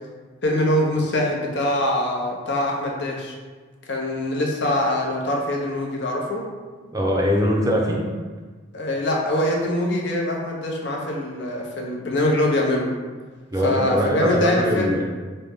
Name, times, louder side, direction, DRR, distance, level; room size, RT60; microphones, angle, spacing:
voice 1, 0.4-3.3 3.9-6.4 8.7-12.9 13.6-15.0, left 1 dB, 65° left, -1 dB, 0.7 m, -23 dB
voice 2, 6.9-8.1 13.5-15.1, equal, 20° right, -2 dB, 0.5 m, -22 dB
5.2 x 2.1 x 3.5 m, 1.4 s
head